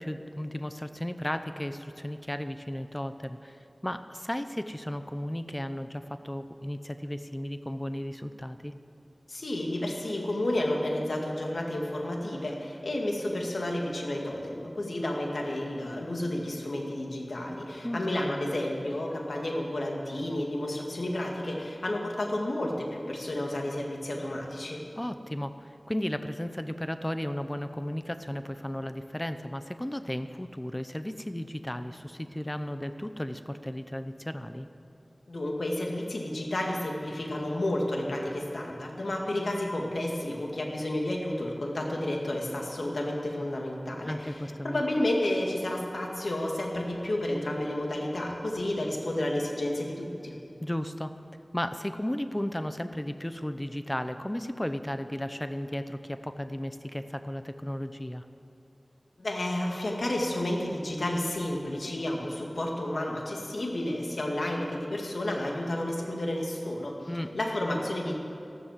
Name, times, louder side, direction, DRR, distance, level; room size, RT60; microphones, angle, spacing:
voice 1, 0.0-8.7 17.8-18.0 18.3-18.4 25.0-34.7 44.1-44.8 50.6-51.2 51.5-58.3 67.1-67.3, left 1 dB, 15° left, 9 dB, 0.8 m, -34 dB
voice 2, 9.3-24.8 35.3-50.3 59.2-67.1 67.3-68.2, left 1 dB, 85° left, 0 dB, 2.3 m, -31 dB
14.0 x 12.5 x 7.5 m, 2.7 s
wide cardioid pair, 55°, 0 cm